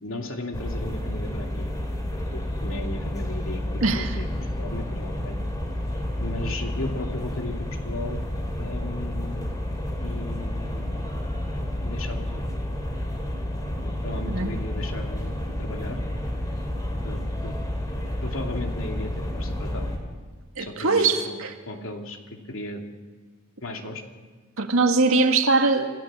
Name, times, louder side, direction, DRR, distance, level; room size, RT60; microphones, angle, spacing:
voice 1, 0.0-1.7 2.3-3.6 3.9-4.3 4.6-5.4 6.2-8.2 8.6-9.5 10.0-10.9 11.8-12.4 13.8-16.0 17.0-17.5 18.2-19.9 20.6-21.4 21.7-22.2 22.5-22.8 23.6-24.0, left 2 dB, 70° left, 3 dB, 2.7 m, -35 dB
sound 1, 0.5-20.0, left 1 dB, 15° left, 2.9 m, -30 dB
voice 2, 3.8-4.2 14.3-14.5 20.6-21.5 24.6-25.9, right 3 dB, 75° right, 5 dB, 2.0 m, -21 dB
28.0 x 15.5 x 7.6 m, 1.4 s
head